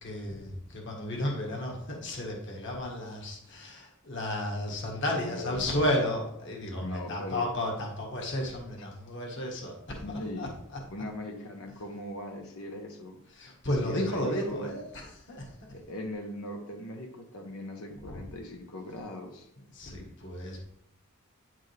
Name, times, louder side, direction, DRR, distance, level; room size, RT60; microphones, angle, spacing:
voice 1, 0.0-10.8 13.4-15.5 18.0-18.2 19.7-20.6, left 1 dB, 55° left, 0 dB, 1.9 m, -33 dB
voice 2, 5.3-5.6 6.8-7.4 10.0-10.5 10.9-13.2 13.8-14.7 15.7-19.5, left 1 dB, 85° left, 2 dB, 1.3 m, -39 dB
9.5 x 7.3 x 3.5 m, 0.75 s
head